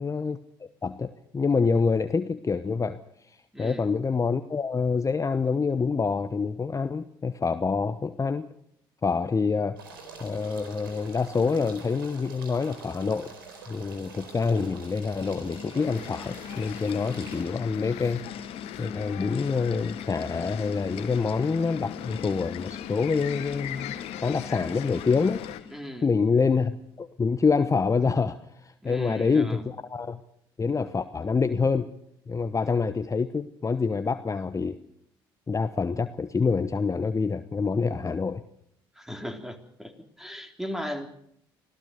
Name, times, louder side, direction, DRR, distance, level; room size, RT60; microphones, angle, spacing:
voice 1, 0.0-3.0 3.3-8.5 9.0-9.8 10.2-13.3 13.7-18.2 18.8-24.0 24.2-25.4 26.0-26.7 27.0-30.2 30.6-31.9 32.3-34.8 35.5-38.4, left 4 dB, 30° left, 11 dB, 1.0 m, -26 dB
voice 2, 3.5-3.9 25.7-26.1 28.8-29.6 38.9-41.1, equal, 5° right, 5 dB, 3.5 m, -37 dB
sound 1, 9.8-17.4, right 4 dB, 85° right, 4.1 m, -45 dB
sound 2, 13.8-25.9, left 7 dB, 55° left, 1.7 m, -41 dB
sound 3, 15.8-25.6, left 14 dB, 70° left, 1.2 m, -41 dB
25.5 x 16.0 x 6.7 m, 0.72 s
hypercardioid pair, 55°, 12 cm